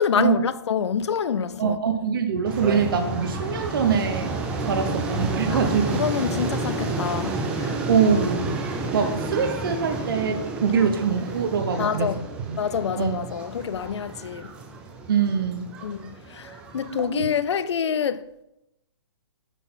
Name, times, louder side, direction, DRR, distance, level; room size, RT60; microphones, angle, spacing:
voice 1, 0.0-1.8 5.5-5.6 5.9-7.8 10.7-10.8 11.8-12.2 12.5-14.5 15.8-18.3, left 7 dB, 80° left, 0.5 m, -27 dB
voice 2, 1.6-4.3 4.6-6.0 7.9-8.6 8.8-12.1 12.5-12.6 13.0-13.3 15.1-15.7 16.9-17.3, right 6 dB, 55° right, 0.8 m, -24 dB
sound 1, 2.5-17.1, right 3 dB, 5° right, 0.4 m, -30 dB
8.2 x 4.0 x 5.6 m
hypercardioid pair, 165°, 14 cm